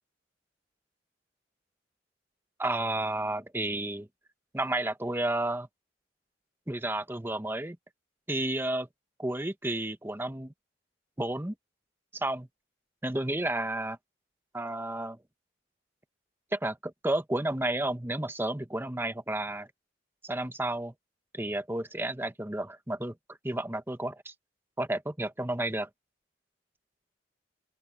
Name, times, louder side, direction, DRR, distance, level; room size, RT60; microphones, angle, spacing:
voice 1, 2.6-4.1 4.5-5.7 6.7-7.8 8.3-8.9 9.2-10.5 11.2-11.5 12.1-12.5 13.0-14.0 14.5-15.2 16.5-19.7 20.2-20.9 21.3-23.1 23.4-24.3 24.8-25.9, right 1 dB, 10° right, 1.0 m, -31 dB
open air
head